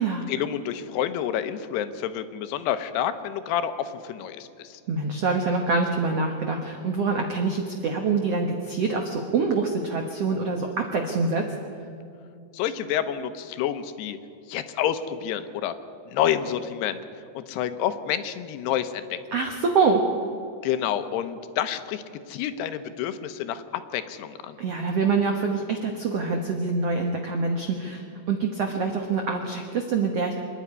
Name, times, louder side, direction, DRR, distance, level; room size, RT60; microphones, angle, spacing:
voice 1, 0.3-4.8 12.5-14.2 14.5-15.8 16.1-17.0 17.4-19.2 20.6-24.6, left 10 dB, 80° left, 10 dB, 2.9 m, -29 dB
voice 2, 4.9-11.5 19.3-20.0 24.6-30.4, right 4 dB, 80° right, 3 dB, 1.4 m, -25 dB
26.0 x 10.5 x 9.7 m, 2.5 s
omnidirectional pair, 4.8 m